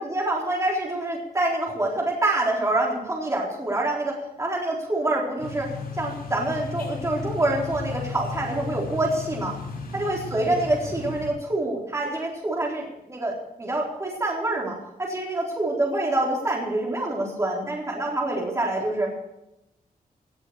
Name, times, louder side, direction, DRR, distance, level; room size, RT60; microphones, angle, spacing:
voice 1, 0.0-9.6 9.9-19.1, right 2 dB, 20° right, -2 dB, 4.0 m, -26 dB
sound 1, 5.4-11.3, left 3 dB, 80° left, 6.7 m, -34 dB
18.5 x 8.2 x 8.1 m, 0.86 s
wide cardioid pair, 170°, 15 cm